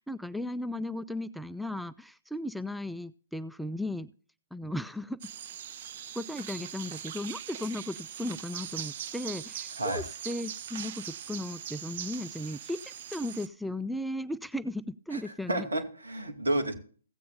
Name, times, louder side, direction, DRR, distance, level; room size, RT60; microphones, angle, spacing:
voice 1, 0.0-4.1 4.5-5.2 6.1-15.7, left 1 dB, ahead, 13 dB, 0.4 m, -36 dB
sound 1, 5.2-13.5, right 9 dB, 45° right, 0.8 m, -41 dB
voice 2, 15.1-16.7, right 1 dB, 75° right, 6 dB, 2.4 m, -31 dB
16.5 x 8.4 x 2.6 m, 0.42 s
figure-of-eight pair, 125°, 0 cm